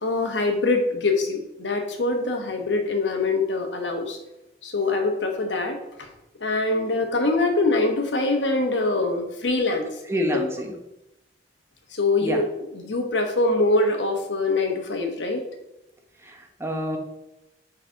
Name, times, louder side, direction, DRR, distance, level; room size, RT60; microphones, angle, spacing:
voice 1, 0.0-4.2 4.6-6.1 6.4-9.9 10.1-10.6 11.9-15.4, left 2 dB, 80° left, 4 dB, 1.3 m, -24 dB
voice 2, 10.1-10.8 12.2-12.4 16.2-17.0, equal, 15° right, 3 dB, 0.9 m, -27 dB
6.6 x 4.1 x 5.8 m, 0.90 s
head